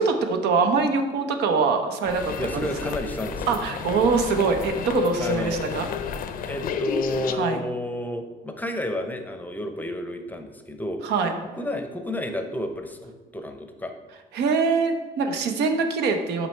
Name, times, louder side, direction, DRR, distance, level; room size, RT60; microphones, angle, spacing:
voice 1, 0.0-2.7 3.5-5.9 7.3-7.6 11.0-11.3 14.3-16.5, right 4 dB, 80° right, 6 dB, 0.9 m, -23 dB
sound 1, 2.0-7.3, left 8 dB, 55° left, 0.5 m, -31 dB
voice 2, 2.4-3.6 5.2-5.6 6.4-11.0 11.6-13.9, left 1 dB, 10° left, 6 dB, 0.6 m, -31 dB
6.0 x 5.5 x 4.5 m, 1.3 s
cardioid pair, 110°, 17 cm